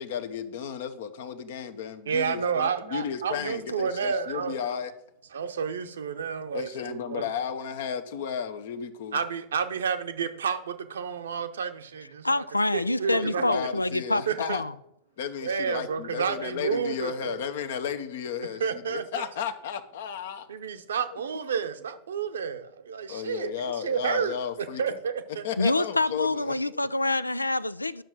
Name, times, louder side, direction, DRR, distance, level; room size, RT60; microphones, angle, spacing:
voice 1, 0.0-4.9 6.5-9.2 13.1-14.6 15.2-20.5 21.1-21.2 23.1-24.8 25.4-26.5, left 8 dB, 55° left, 1.0 m, -34 dB
voice 2, 2.1-4.6 5.3-7.2 9.1-12.4 12.7-13.4 14.3-14.6 15.4-17.4 18.6-19.3 20.5-25.5, right 6 dB, 65° right, 0.8 m, -30 dB
voice 3, 12.2-14.2 14.5-14.7 25.6-28.0, left 2 dB, 85° left, 0.3 m, -26 dB
10.5 x 6.4 x 6.3 m
figure-of-eight pair, 90°, 0 cm